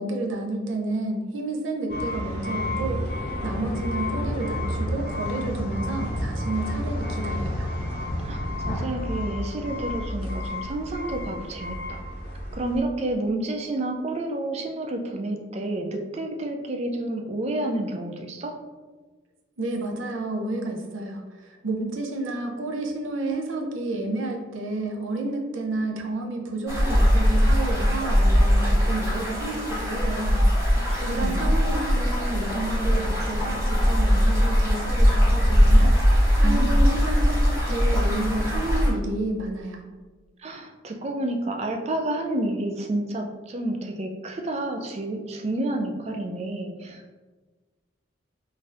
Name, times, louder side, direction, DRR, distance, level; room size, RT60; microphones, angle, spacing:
voice 1, 0.0-3.0 3.4-7.7 19.6-30.4 31.0-36.0 36.4-39.8, right 2 dB, 80° right, 1 dB, 0.6 m, -30 dB
sound 1, 1.9-12.8, left 1 dB, 50° left, 0.6 m, -30 dB
voice 2, 8.2-12.0 12.5-18.6 30.9-31.5 36.4-36.7 40.4-47.1, right 1 dB, 30° right, 3 dB, 0.3 m, -30 dB
sound 2, 26.7-38.9, equal, 15° right, 0.8 m, -20 dB
3.8 x 2.6 x 2.4 m, 1.3 s
head